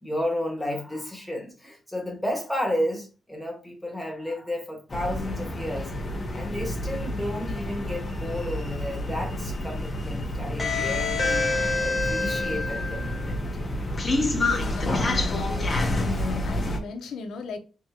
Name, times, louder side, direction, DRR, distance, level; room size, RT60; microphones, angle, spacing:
voice 1, 0.0-5.9 6.3-13.4, left 1 dB, 5° left, 1.5 m, -32 dB
sound 1, 4.9-16.8, left 2 dB, 30° left, 1.0 m, -28 dB
voice 2, 14.5-15.5 15.8-17.6, left 5 dB, 90° left, 0.8 m, -36 dB
3.7 x 3.5 x 2.9 m
cardioid pair, 115°, 0 cm